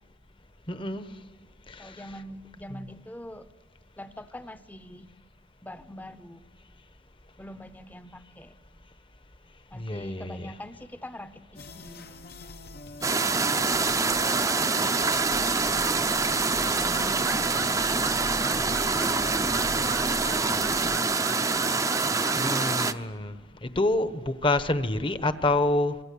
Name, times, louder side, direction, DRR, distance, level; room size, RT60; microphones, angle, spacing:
voice 1, 0.7-1.1 1.7-2.0 9.7-10.5 22.3-26.0, left 2 dB, 30° left, 11 dB, 1.1 m, -27 dB
voice 2, 1.8-3.5 4.0-5.1 5.6-6.5 7.4-8.6 9.7-12.1 12.9-15.0 15.5-16.1 16.4-19.7 20.2-21.0, equal, 10° left, 12 dB, 0.9 m, -44 dB
sound 1, 11.5-21.0, left 2 dB, 60° left, 1.1 m, -43 dB
sound 2, 13.0-22.9, right 4 dB, 20° right, 0.7 m, -25 dB
sound 3, 13.2-22.5, right 5 dB, 80° right, 1.0 m, -42 dB
26.5 x 24.0 x 8.5 m, 1.4 s
head